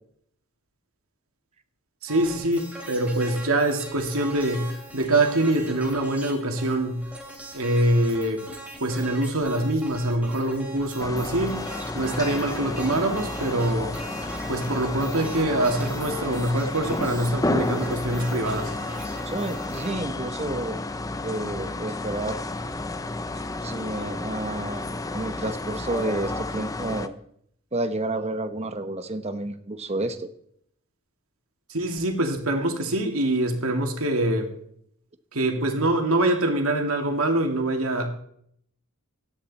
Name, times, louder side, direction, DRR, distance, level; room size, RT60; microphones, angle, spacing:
voice 1, 2.0-7.0 7.5-8.4 8.8-11.6 11.9-13.9 14.5-18.7 31.7-34.5 35.3-38.1, right 1 dB, 80° right, 4 dB, 2.4 m, -24 dB
sound 1, 2.1-19.9, right 1 dB, 5° right, 3.2 m, -41 dB
sound 2, 11.0-27.1, left 2 dB, 15° left, 0.6 m, -31 dB
voice 2, 19.3-20.8 21.2-22.4 23.6-24.9 25.1-27.1 27.7-30.3, right 2 dB, 30° right, 9 dB, 1.0 m, -30 dB
17.5 x 13.0 x 4.2 m, 0.69 s
head